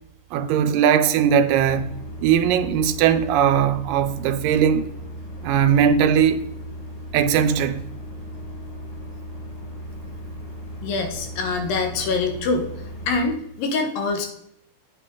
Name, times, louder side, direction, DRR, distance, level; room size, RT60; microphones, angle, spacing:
voice 1, 0.3-1.9 2.2-4.9 5.4-6.4 7.1-7.8, right 8 dB, 90° right, 2.3 m, -19 dB
sound 1, 1.5-13.3, equal, 50° left, 5.6 m, -37 dB
voice 2, 10.8-12.7 13.1-14.3, left 3 dB, 90° left, 3.1 m, -24 dB
8.6 x 8.1 x 3.8 m
omnidirectional pair, 3.9 m